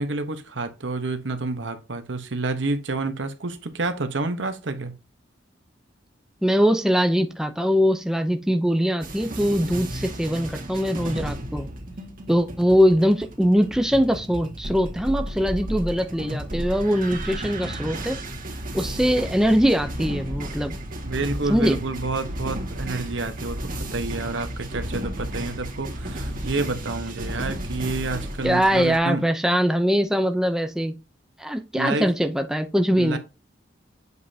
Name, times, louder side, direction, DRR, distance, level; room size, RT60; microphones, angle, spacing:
voice 1, 0.0-4.9 21.0-23.6 23.9-29.2 31.7-32.1 32.9-33.2, right 3 dB, 80° right, 1.0 m, -29 dB
voice 2, 6.4-11.7 12.3-18.2 18.7-20.8 21.5-21.8 28.4-30.9 31.4-33.2, equal, 5° right, 0.6 m, -22 dB
sound 1, 9.0-29.0, right 1 dB, 50° right, 1.9 m, -33 dB
8.0 x 5.2 x 2.8 m
head